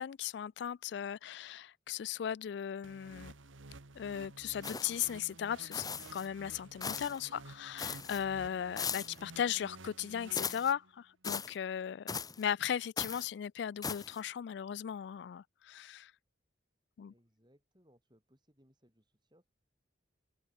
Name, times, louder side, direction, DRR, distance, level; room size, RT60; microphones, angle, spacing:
voice 1, 0.0-3.3 4.0-12.1 12.4-16.1 17.0-17.1, left 9 dB, 65° left, 0.3 m, -37 dB
Sidechained Synth, 2.8-11.0, right 2 dB, 90° right, 1.7 m, -53 dB
sound 1, 4.6-5.2 5.7-6.3 6.8-7.2 7.8-8.2 8.8-9.2 10.3-10.7 11.2-11.5 12.1-12.4 13.0-13.3 13.8-14.2, left 6 dB, 20° left, 1.1 m, -39 dB
voice 2, 17.1-19.5, equal, 20° right, 7.5 m, -68 dB
open air
head